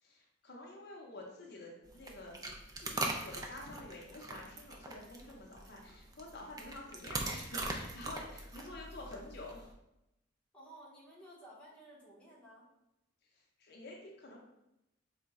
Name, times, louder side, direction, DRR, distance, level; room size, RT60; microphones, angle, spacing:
voice 1, 0.0-2.4 2.8-9.7 13.6-14.4, left 2 dB, 55° left, -1 dB, 0.6 m, -49 dB
sound 1, 1.9-9.7, right 2 dB, 20° right, 0.3 m, -42 dB
voice 2, 10.5-12.7, right 1 dB, 5° left, -6 dB, 0.8 m, -55 dB
3.9 x 2.1 x 3.5 m, 0.88 s
head